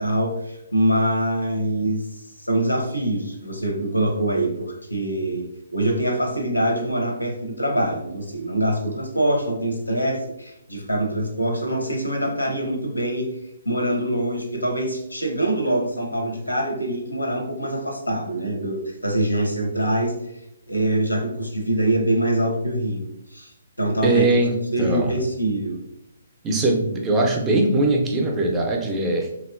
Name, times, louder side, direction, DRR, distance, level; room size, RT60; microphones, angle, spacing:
voice 1, 0.0-13.4 13.6-20.1 20.7-23.5 23.8-24.2 24.7-25.8, right 1 dB, 90° left, 2 dB, 0.6 m, -24 dB
voice 2, 24.0-24.5 24.8-25.2 26.4-29.3, right 2 dB, 15° right, 1 dB, 0.4 m, -21 dB
2.9 x 2.3 x 2.3 m, 0.85 s
figure-of-eight pair, 135°, 0 cm